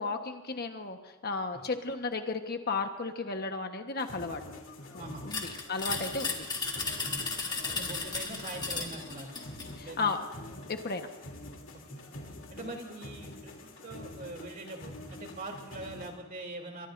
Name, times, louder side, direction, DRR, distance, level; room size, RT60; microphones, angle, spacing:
voice 1, 0.0-4.4 5.2-6.5 7.7-8.0 9.8-10.2 10.7-11.1, left 3 dB, 45° left, 5 dB, 1.2 m, -34 dB
sound 1, 4.0-16.1, left 1 dB, 60° left, 3.1 m, -46 dB
voice 2, 5.0-5.3 7.0-7.3 7.6-9.4 9.7-10.2 11.7-12.0 12.5-16.9, right 2 dB, 40° right, 2 dB, 3.2 m, -43 dB
sound 2, 5.3-9.7, left 4 dB, 20° left, 2.3 m, -35 dB
23.5 x 23.0 x 2.6 m, 1.2 s
head